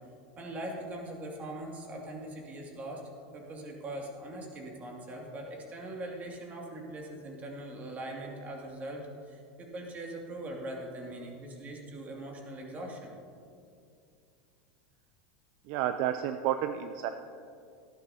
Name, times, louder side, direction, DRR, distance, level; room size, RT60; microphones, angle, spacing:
voice 1, 0.4-3.0 3.3-13.1, right 1 dB, 30° right, 0 dB, 2.3 m, -41 dB
voice 2, 15.7-17.1, right 11 dB, 60° right, 9 dB, 0.4 m, -30 dB
14.0 x 11.5 x 2.8 m, 2.4 s
supercardioid pair, 120°, 5 cm